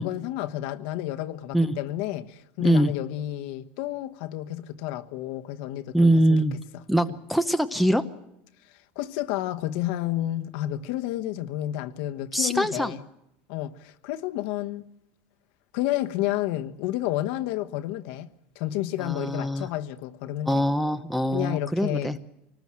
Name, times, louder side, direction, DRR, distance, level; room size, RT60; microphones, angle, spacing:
voice 1, 0.0-7.1 8.9-13.1 13.5-14.9 15.7-18.3 18.5-20.7 21.3-22.2, left 14 dB, 60° left, 1.3 m, -31 dB
voice 2, 2.6-2.9 5.9-6.5 6.9-8.0 12.3-13.0 19.0-19.7 20.5-22.2, right 1 dB, ahead, 0.8 m, -23 dB
25.0 x 19.5 x 7.6 m
cardioid pair, 165°, 6 cm